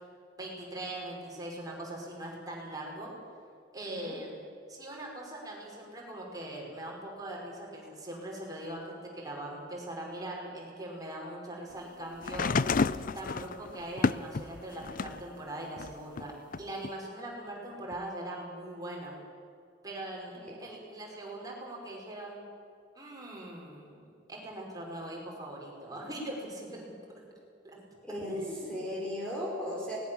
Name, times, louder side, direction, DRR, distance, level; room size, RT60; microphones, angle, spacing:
voice 1, 0.4-3.1 3.7-4.4 4.7-12.5 13.1-16.3 16.6-19.2 19.8-22.5 22.9-26.9 27.6-27.8 28.2-28.8, right 1 dB, 20° right, -2 dB, 5.6 m, -41 dB
sound 1, 12.2-15.3 15.8-16.9 17.9-18.0, left 4 dB, 45° left, 0.5 m, -31 dB
voice 2, 28.0-30.0, left 1 dB, 5° left, -4 dB, 4.1 m, -37 dB
24.0 x 19.5 x 7.3 m, 2.4 s
head